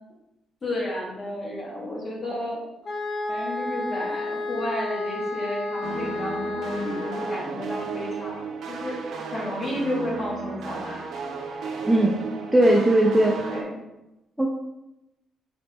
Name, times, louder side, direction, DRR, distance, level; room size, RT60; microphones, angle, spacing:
voice 1, 0.6-2.6 3.3-8.4 8.7-9.0 9.3-11.0 13.3-13.8, left 1 dB, 35° left, -3 dB, 1.6 m, -32 dB
sound 1, 2.8-7.5, left 2 dB, 65° left, 1.1 m, -31 dB
sound 2, 5.8-13.6, right 4 dB, 70° right, 0.6 m, -34 dB
voice 2, 11.9-12.2 12.5-13.4 14.4-14.5, right 1 dB, 5° right, 0 dB, 0.5 m, -18 dB
4.1 x 3.9 x 2.8 m, 0.93 s
cardioid pair, 90°, 0 cm